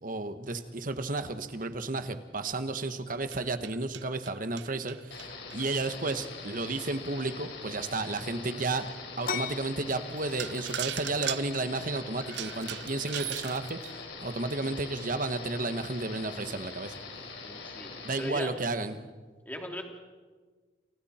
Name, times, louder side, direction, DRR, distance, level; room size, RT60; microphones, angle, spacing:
voice 1, 0.0-8.9 9.2-13.8 14.2-16.9 18.0-19.1, right 2 dB, 50° right, 9 dB, 1.3 m, -32 dB
sound 1, 3.1-6.6 7.2-7.3 7.8-7.9 8.4-8.5 9.7-9.8 10.2-14.0, right 12 dB, 70° right, 0.6 m, -39 dB
sound 2, 5.1-18.3, left 4 dB, 75° left, 4.4 m, -43 dB
sound 3, 9.2-18.6, left 5 dB, 50° left, 1.2 m, -45 dB
voice 2, 17.4-18.5 19.4-19.8, left 1 dB, 10° left, 1 dB, 3.2 m, -39 dB
29.5 x 28.5 x 4.4 m, 1.4 s
head